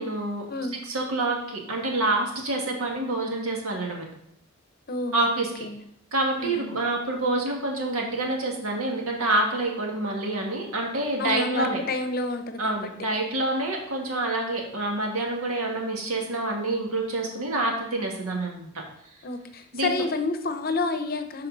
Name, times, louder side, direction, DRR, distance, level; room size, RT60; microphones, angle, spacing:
voice 1, 0.0-4.1 5.1-5.7 6.1-11.8 12.6-18.8 19.7-19.9, right 2 dB, 90° right, 0 dB, 1.9 m, -27 dB
voice 2, 4.9-5.9 6.4-6.9 11.2-12.8 19.2-21.5, left 3 dB, 45° left, 8 dB, 0.7 m, -29 dB
11.5 x 4.3 x 3.9 m, 0.73 s
head